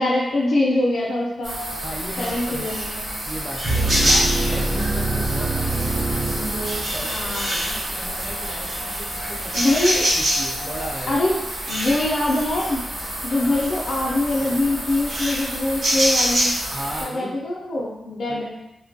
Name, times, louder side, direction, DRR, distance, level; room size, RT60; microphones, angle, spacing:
voice 1, 0.0-1.6 2.2-3.1 7.0-7.7 9.5-10.1 11.1-11.3 11.7-12.8 13.2-16.5 17.0-18.5, left 2 dB, 60° left, -4 dB, 0.4 m, -23 dB
sound 1, 1.4-17.0, right 1 dB, 70° right, 1.0 m, -26 dB
sound 2, 1.5-10.9, left 1 dB, 90° right, 0.3 m, -43 dB
voice 2, 1.8-2.7 3.3-9.8 10.2-11.2 13.4-13.6 16.7-17.3 18.3-18.5, right 1 dB, 5° right, -2 dB, 0.4 m, -35 dB
sound 3, 3.6-7.1, right 2 dB, 25° right, 0.9 m, -24 dB
3.0 x 2.1 x 2.6 m, 0.92 s
wide cardioid pair, 155°, 0 cm